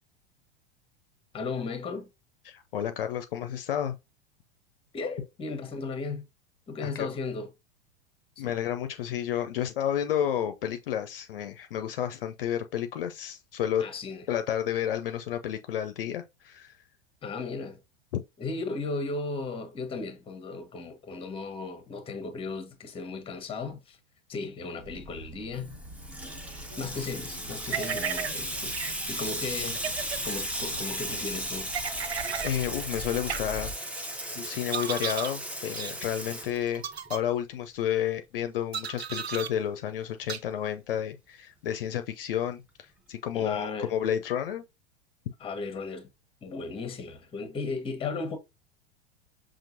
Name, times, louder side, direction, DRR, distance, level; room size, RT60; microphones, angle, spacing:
voice 1, 1.3-2.1 4.9-6.3 6.7-7.5 8.4-8.5 13.8-14.3 17.2-17.8 18.4-24.0 24.3-25.8 26.4-28.8 29.1-29.8 30.2-31.7 43.3-43.9 45.4-46.1 46.4-48.4, left 4 dB, 15° left, 1.0 m, -36 dB
voice 2, 2.5-4.0 6.8-7.1 8.4-13.8 14.3-16.7 32.4-33.7 34.3-36.8 37.1-44.6, left 10 dB, 65° left, 0.5 m, -31 dB
sound 1, 24.8-33.7, equal, 50° right, 1.6 m, -45 dB
Water tap faucet / Sink (filling or washing), 25.7-37.1, equal, 5° right, 0.7 m, -36 dB
sound 2, 27.7-28.3 28.7-28.9 29.7-30.2 31.7-32.5 33.3-33.4 34.7-35.3 35.7-35.9 36.7-37.2 38.7-39.5 40.3-40.4, right 7 dB, 80° right, 0.6 m, -33 dB
5.8 x 2.5 x 2.7 m
figure-of-eight pair, 90°, 31 cm